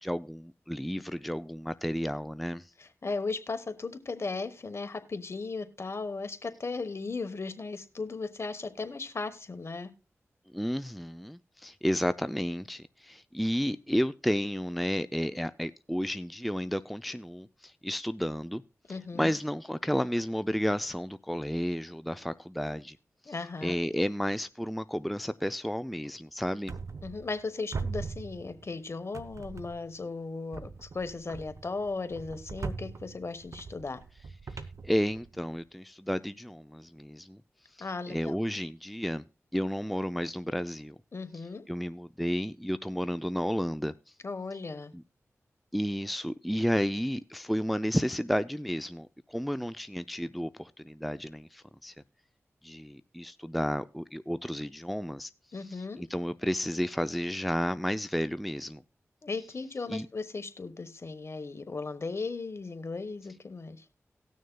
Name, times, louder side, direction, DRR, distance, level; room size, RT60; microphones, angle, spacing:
voice 1, 0.0-2.7 10.5-18.6 18.9-23.0 23.6-26.7 34.8-37.4 37.8-39.2 39.5-41.0 41.3-43.9 44.9-45.0 45.7-51.9 52.6-55.3 55.7-58.8 59.9-60.1, equal, ahead, 0.3 m, -32 dB
voice 2, 2.8-9.9 18.9-19.3 23.3-23.7 27.0-34.0 37.8-38.3 41.1-41.6 44.2-44.9 55.5-56.0 59.2-63.8, left 3 dB, 55° left, 1.1 m, -36 dB
sound 1, 26.7-27.4 27.7-28.8 29.1-30.0 30.5-35.6, right 4 dB, 70° right, 0.6 m, -41 dB
19.0 x 6.4 x 2.2 m
cardioid pair, 45°, 6 cm